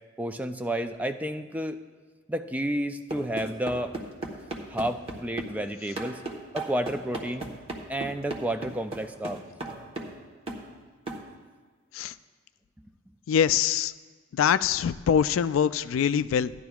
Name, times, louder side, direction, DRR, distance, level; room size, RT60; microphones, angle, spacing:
voice 1, 0.2-1.8 2.3-4.0 4.7-6.2 6.5-7.5 7.9-9.4, right 1 dB, 10° right, 8 dB, 0.3 m, -31 dB
sound 1, 3.1-5.5 6.0-10.2 10.5-10.7 11.1-11.2, right 2 dB, 30° right, 1.1 m, -36 dB
voice 2, 13.3-13.9 14.3-16.5, left 8 dB, 80° left, 15 dB, 0.3 m, -24 dB
15.5 x 11.0 x 2.3 m, 1.4 s
head